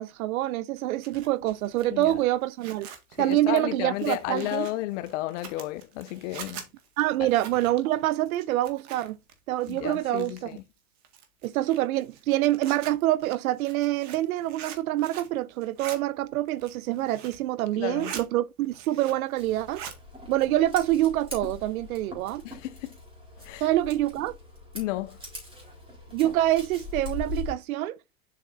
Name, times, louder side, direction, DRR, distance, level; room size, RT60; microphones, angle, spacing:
voice 1, 0.0-2.9 3.2-4.7 7.0-9.2 9.5-10.6 11.4-19.8 20.3-22.4 23.6-24.3 26.1-28.0, right 14 dB, 85° right, 0.6 m, -26 dB
Zipper (clothing), 0.8-9.3 9.6-10.6 11.0-15.4 15.6-16.0 16.4-17.5 17.8-18.3 18.6-19.3 19.6-20.0, right 8 dB, 40° right, 1.8 m, -44 dB
voice 2, 3.2-6.6 7.2-7.3 9.7-10.6 17.8-18.1 22.4-22.9 23.4-23.7 24.7-25.2, left 16 dB, 60° left, 0.6 m, -32 dB
Scissors, 19.4-27.5, left 3 dB, 15° right, 3.9 m, -41 dB
7.5 x 5.6 x 2.6 m
supercardioid pair, 130°, 41 cm